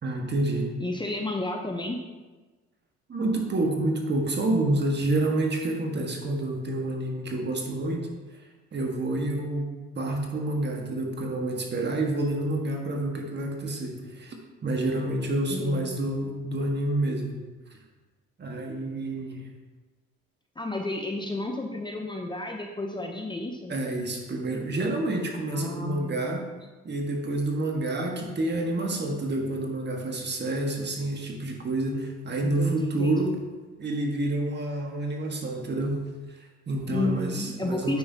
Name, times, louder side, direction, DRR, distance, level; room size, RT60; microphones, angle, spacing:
voice 1, 0.0-0.7 3.1-8.1 8.7-14.3 14.6-17.3 18.4-19.4 23.7-26.4 26.8-33.4 33.8-36.0 36.3-38.0, right 2 dB, 35° right, 2 dB, 1.5 m, -28 dB
voice 2, 0.8-2.0 15.5-16.3 20.6-23.7 25.5-26.2 32.4-33.3 36.9-38.0, left 2 dB, 15° left, 2 dB, 0.8 m, -32 dB
9.2 x 5.6 x 2.8 m, 1.2 s
supercardioid pair, 75°, 29 cm